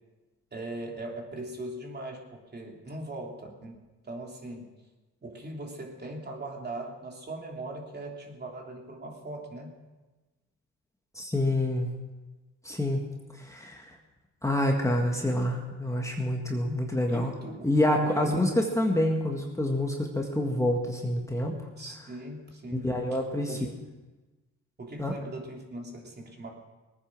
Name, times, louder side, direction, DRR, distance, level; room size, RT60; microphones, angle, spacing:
voice 1, 0.5-3.8 4.0-4.7 5.2-9.8 16.9-17.7 18.0-18.6 21.8-23.2 23.5-23.7 24.8-26.5, right 2 dB, 35° right, 1 dB, 3.1 m, -40 dB
voice 2, 11.2-12.0 12.6-13.0 13.4-13.9 14.4-17.3 17.6-21.6 22.7-23.7 25.0-25.1, left 1 dB, 10° left, 1 dB, 1.8 m, -27 dB
19.0 x 9.5 x 6.1 m, 1.2 s
cardioid pair, 90°, 30 cm